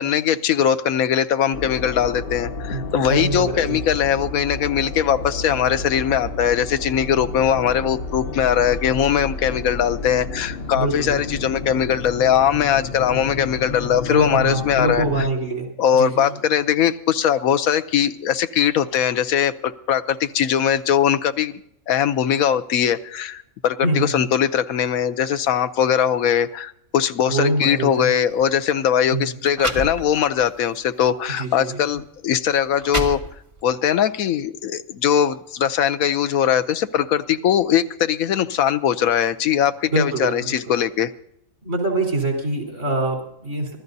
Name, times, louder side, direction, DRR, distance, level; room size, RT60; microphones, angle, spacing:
voice 1, 0.0-15.1 15.8-21.6 21.9-33.2 33.6-41.1, left 9 dB, 80° left, 12 dB, 1.2 m, -20 dB
sound 1, 1.5-15.3, left 3 dB, 50° left, 0.9 m, -31 dB
voice 2, 2.7-3.8 10.7-11.2 14.1-15.7 16.0-16.2 23.8-24.1 27.3-28.1 29.1-29.3 31.4-31.8 39.9-40.5 41.6-43.8, right 2 dB, 60° right, 2 dB, 4.4 m, -24 dB
sound 2, 28.3-28.5 29.2-29.3 29.5-30.5 31.0-31.2 32.0-32.1 32.6-33.7, right 1 dB, 20° right, 1.6 m, -29 dB
24.5 x 15.0 x 2.7 m, 0.74 s
omnidirectional pair, 1.5 m